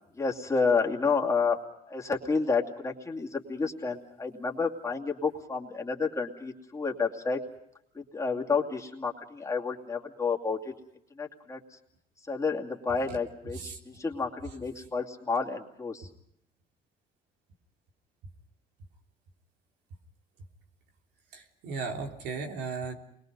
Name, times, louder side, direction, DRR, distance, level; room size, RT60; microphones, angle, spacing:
voice 1, 0.2-1.6 1.9-7.4 7.9-10.7 11.2-11.6 12.2-16.1, left 4 dB, 20° left, 0 dB, 2.5 m, -30 dB
voice 2, 21.3-22.9, right 4 dB, 85° right, 2 dB, 3.2 m, -36 dB
28.5 x 22.0 x 5.3 m, 0.76 s
cardioid pair, 110°, 17 cm